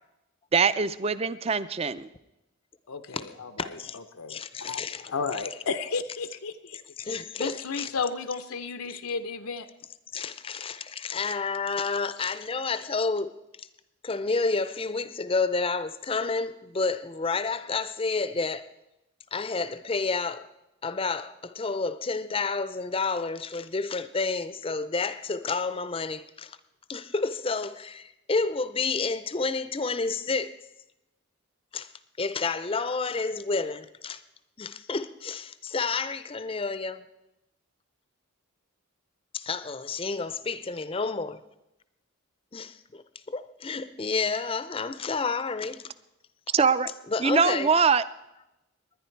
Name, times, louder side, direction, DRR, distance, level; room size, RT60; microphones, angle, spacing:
voice 1, 0.5-2.1 46.5-46.9 47.2-48.0, right 5 dB, 30° right, 0.4 m, -23 dB
voice 2, 2.9-3.7 4.1-4.8 5.1-9.7, left 4 dB, 85° left, 0.7 m, -33 dB
voice 3, 3.6-4.0 4.3-5.4 7.0-7.9 8.8-8.9 10.1-13.3 13.6-13.7 14.0-18.7 19.3-20.5 20.8-26.6 26.9-30.6 31.7-34.2 34.6-37.0 39.3-41.4 42.5-45.8 46.5-46.6 47.1-47.7, left 4 dB, 25° left, 0.5 m, -30 dB
20.0 x 10.5 x 4.5 m
head